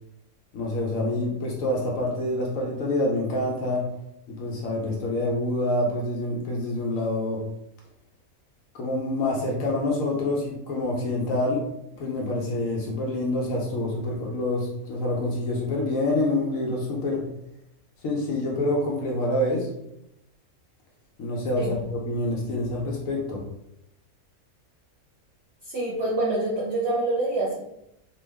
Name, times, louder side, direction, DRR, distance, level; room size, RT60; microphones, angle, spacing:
voice 1, 0.5-3.9 4.3-7.4 8.8-11.7 12.0-17.3 18.0-19.7 21.2-23.4, left 1 dB, 70° left, -2 dB, 1.0 m, -27 dB
voice 2, 25.6-27.6, right 2 dB, 50° right, -6 dB, 0.9 m, -26 dB
2.9 x 2.2 x 3.3 m, 0.82 s
omnidirectional pair, 1.5 m